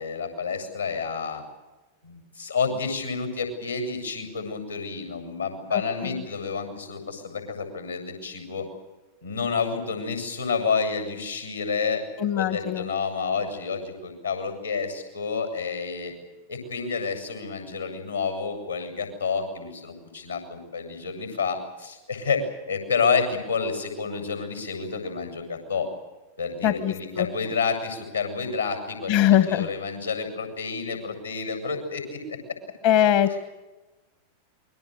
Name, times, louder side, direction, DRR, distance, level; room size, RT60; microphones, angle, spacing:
voice 1, 0.0-1.4 2.0-8.7 9.2-12.0 12.4-16.1 16.5-25.9 26.4-32.3, left 5 dB, 85° left, 5 dB, 7.5 m, -29 dB
voice 2, 5.7-6.3 12.2-12.9 26.6-27.3 29.1-29.7 32.8-33.4, left 11 dB, 50° left, 12 dB, 1.1 m, -22 dB
28.5 x 23.0 x 6.6 m, 1.1 s
figure-of-eight pair, 90°, 0 cm